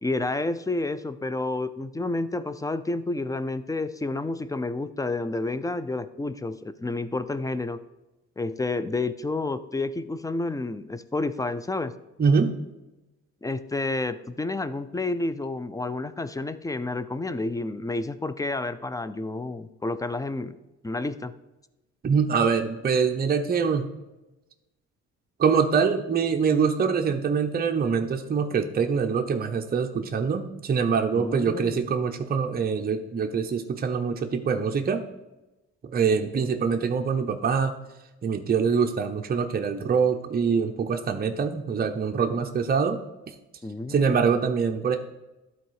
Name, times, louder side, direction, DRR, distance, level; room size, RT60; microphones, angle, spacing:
voice 1, 0.0-7.8 8.4-11.9 13.4-20.6 20.8-21.3 31.1-31.8 43.6-44.2, left 2 dB, 10° left, 13 dB, 0.4 m, -30 dB
voice 2, 12.2-12.6 22.0-23.9 25.4-35.0 35.9-37.7 38.2-43.0 43.9-45.0, right 6 dB, 30° right, 5 dB, 0.7 m, -24 dB
12.0 x 4.1 x 4.8 m, 1.0 s
cardioid pair, 90°, 30 cm